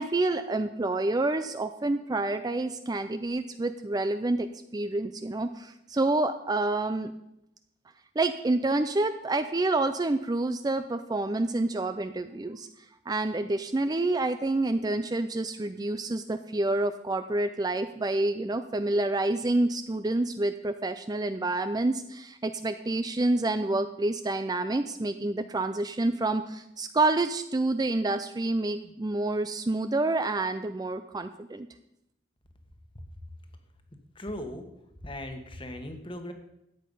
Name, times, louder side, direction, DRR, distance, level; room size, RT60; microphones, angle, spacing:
voice 1, 0.0-7.1 8.2-12.7 13.1-31.7, right 2 dB, 20° right, 10 dB, 0.4 m, -28 dB
voice 2, 34.1-34.7 35.0-36.3, left 1 dB, 25° left, 6 dB, 1.4 m, -38 dB
13.5 x 8.8 x 5.5 m, 0.84 s
head